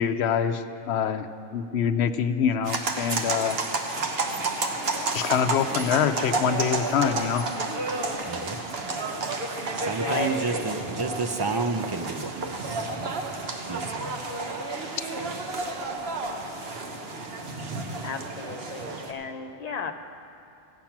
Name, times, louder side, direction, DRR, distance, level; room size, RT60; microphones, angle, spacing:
voice 1, 0.0-3.6 5.1-7.4, left 7 dB, 75° left, 9 dB, 0.8 m, -25 dB
sound 1, 2.6-19.1, right 3 dB, 65° right, 1.2 m, -31 dB
voice 2, 7.9-9.0 9.4-13.1 13.4-14.9 15.8-16.6, right 4 dB, 35° right, 6 dB, 0.4 m, -33 dB
voice 3, 10.0-10.7 18.0-19.9, left 5 dB, 40° left, 5 dB, 0.8 m, -34 dB
15.5 x 8.7 x 5.9 m, 2.6 s
omnidirectional pair, 1.1 m